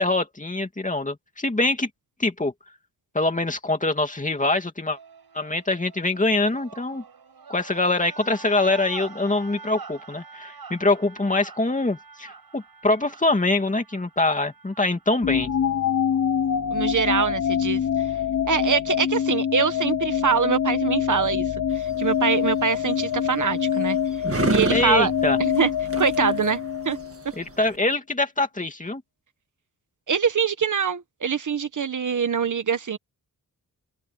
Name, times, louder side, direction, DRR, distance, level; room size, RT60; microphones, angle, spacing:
voice 1, 0.0-1.9 2.2-2.5 3.1-5.0 5.3-7.0 7.5-15.5 24.7-25.4 27.4-29.0, left 2 dB, 20° left, 2.6 m, -24 dB
sound 1, 4.9-15.3, right 5 dB, 75° right, 6.9 m, -45 dB
sound 2, 15.2-27.3, left 8 dB, 55° left, 0.8 m, -25 dB
voice 2, 16.7-17.8 18.5-24.0 24.5-25.1 25.4-25.7 26.0-26.6 26.8-27.0 30.1-33.0, right 6 dB, 55° right, 1.1 m, -24 dB
sound 3, 21.7-27.8, right 4 dB, 40° right, 1.7 m, -31 dB
open air
wide cardioid pair, 165°, 37 cm